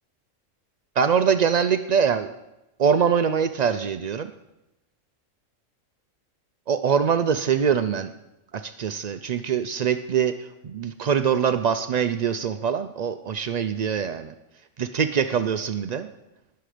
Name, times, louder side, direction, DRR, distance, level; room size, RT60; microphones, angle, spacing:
voice 1, 1.0-2.3 2.8-4.3 6.7-8.1 8.5-14.3 14.8-16.1, right 7 dB, 75° right, 10 dB, 0.3 m, -23 dB
19.5 x 6.8 x 5.0 m, 0.94 s
omnidirectional pair, 1.3 m